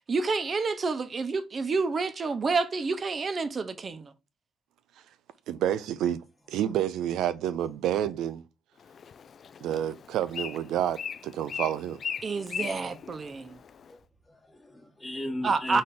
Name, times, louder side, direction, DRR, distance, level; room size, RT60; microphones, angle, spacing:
voice 1, 0.1-4.1 12.2-13.6 15.4-15.8, right 4 dB, 40° right, 0.8 m, -29 dB
voice 2, 5.5-6.2 6.5-8.4 9.6-12.0, right 11 dB, 85° right, 0.5 m, -29 dB
Bird, 8.8-13.9, left 7 dB, 55° left, 0.3 m, -39 dB
voice 3, 12.4-13.0 13.9-14.0 14.3-15.8, left 1 dB, 20° left, 1.1 m, -38 dB
4.2 x 3.2 x 3.8 m
cardioid pair, 90°, 0 cm